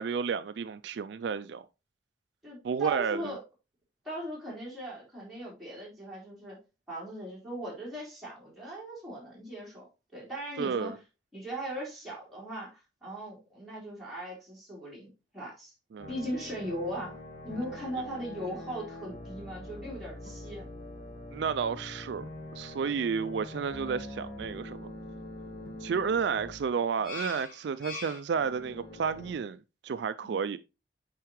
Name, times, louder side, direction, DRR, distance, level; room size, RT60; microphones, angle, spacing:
voice 1, 0.0-1.7 2.6-3.4 10.6-11.0 15.9-16.1 21.3-22.2 22.5-24.9 25.8-29.6 29.8-30.6, right 6 dB, 65° right, 0.3 m, -31 dB
voice 2, 2.4-3.4 4.0-6.6 6.9-11.0 11.3-15.1 15.3-15.7 16.1-17.2 17.4-20.7 30.2-30.4, right 1 dB, ahead, 3.8 m, -39 dB
sound 1, 16.0-29.3, left 1 dB, 45° left, 1.7 m, -44 dB
9.1 x 4.6 x 3.1 m
head